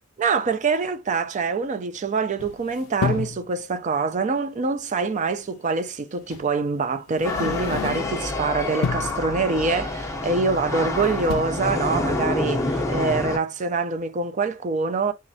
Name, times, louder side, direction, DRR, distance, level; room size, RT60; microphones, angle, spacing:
voice 1, 0.2-15.1, right 4 dB, 35° right, 0.4 m, -25 dB
sound 1, 2.4-3.4 5.1-5.2 6.3-6.5 7.1-8.3 8.7-9.2 10.5-10.9 11.1-11.4, left 6 dB, 75° left, 0.3 m, -30 dB
sound 2, 7.2-13.4, left 2 dB, 15° left, 0.6 m, -27 dB
3.7 x 3.1 x 2.7 m
head